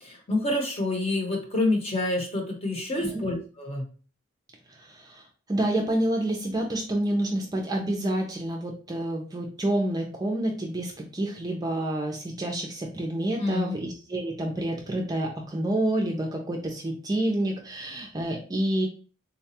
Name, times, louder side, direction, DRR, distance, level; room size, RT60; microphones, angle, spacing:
voice 1, 0.0-3.9 13.4-13.8, left 2 dB, 30° left, 1 dB, 0.9 m, -28 dB
voice 2, 4.8-18.9, right 1 dB, 20° right, 1 dB, 0.5 m, -28 dB
3.9 x 2.3 x 2.8 m, 0.37 s
head